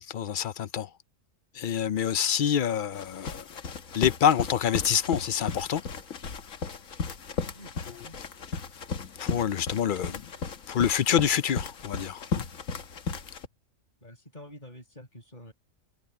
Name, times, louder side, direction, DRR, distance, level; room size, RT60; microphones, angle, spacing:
voice 1, 0.1-0.9 1.5-3.4 3.9-5.8 9.2-10.3 10.7-12.4, left 9 dB, 55° left, 0.6 m, -26 dB
sound 1, 2.9-13.5, left 4 dB, 80° left, 1.7 m, -36 dB
voice 2, 7.5-8.2 14.0-15.5, left 1 dB, 35° left, 8.0 m, -48 dB
omnidirectional pair, 1.3 m